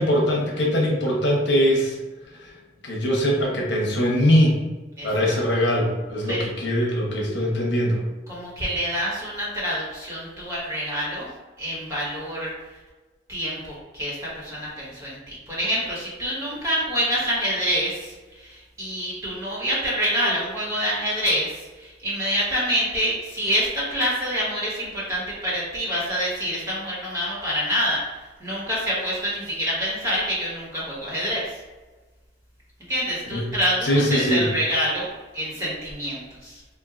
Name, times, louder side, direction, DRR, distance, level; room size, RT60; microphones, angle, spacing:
voice 1, 0.0-2.0 2.4-2.5 2.8-4.6 5.0-8.0 33.3-33.5 33.8-34.4, equal, 80° left, -2 dB, 0.9 m, -21 dB
voice 2, 5.0-5.3 6.3-6.4 8.3-11.3 11.6-12.5 13.3-28.0 28.4-31.5 32.9-35.1 35.3-36.6, equal, 15° right, -8 dB, 1.5 m, -26 dB
4.4 x 2.6 x 2.5 m, 1.2 s
head